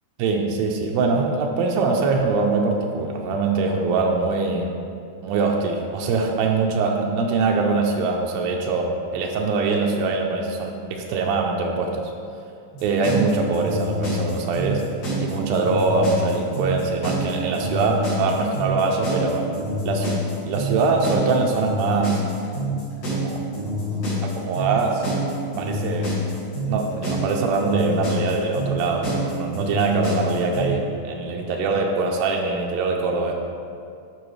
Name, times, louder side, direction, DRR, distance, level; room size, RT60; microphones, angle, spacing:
voice 1, 0.2-4.7 5.2-12.1 12.8-14.8 15.2-19.5 19.8-22.2 23.1-23.4 24.2-25.0 25.6-26.2 26.7-33.3, right 4 dB, 85° right, 1 dB, 2.4 m, -23 dB
sound 1, 12.7-30.7, equal, 65° left, 3.5 m, -27 dB
11.0 x 5.4 x 3.2 m, 2.4 s
omnidirectional pair, 4.2 m